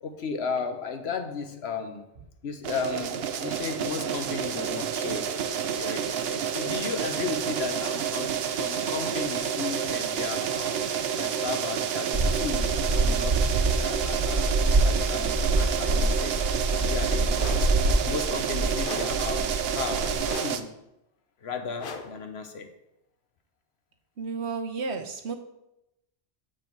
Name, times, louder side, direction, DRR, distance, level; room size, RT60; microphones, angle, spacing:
voice 1, 0.0-2.1 2.4-5.3 5.7-10.9 11.2-13.4 13.8-16.4 16.8-20.8 21.4-22.7, left 5 dB, 75° left, 6 dB, 1.2 m, -35 dB
sound 1, 2.6-20.6, right 8 dB, 70° right, 0.9 m, -29 dB
sound 2, 12.1-20.3, right 2 dB, 40° right, 1.0 m, -26 dB
sound 3, 17.4-17.8 18.8-19.3 20.2-20.7 21.8-22.3, left 5 dB, 60° left, 0.8 m, -39 dB
voice 2, 24.2-25.4, right 4 dB, 90° right, 6 dB, 1.2 m, -32 dB
7.6 x 6.2 x 4.6 m, 0.86 s
omnidirectional pair, 1.1 m